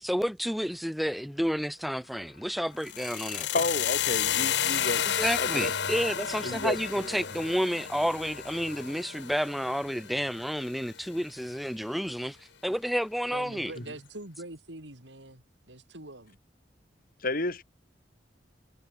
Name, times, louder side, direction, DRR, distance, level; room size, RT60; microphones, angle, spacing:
voice 1, 0.0-3.5 5.1-12.4 12.6-13.7, equal, ahead, 3.0 m, -30 dB
sound 1, 2.8-10.8, left 9 dB, 70° left, 1.3 m, -32 dB
voice 2, 3.5-5.0 5.3-5.7 6.4-6.8 7.1-7.3 17.2-17.6, left 2 dB, 55° left, 4.3 m, -31 dB
voice 3, 13.2-16.4, right 2 dB, 80° right, 5.3 m, -44 dB
head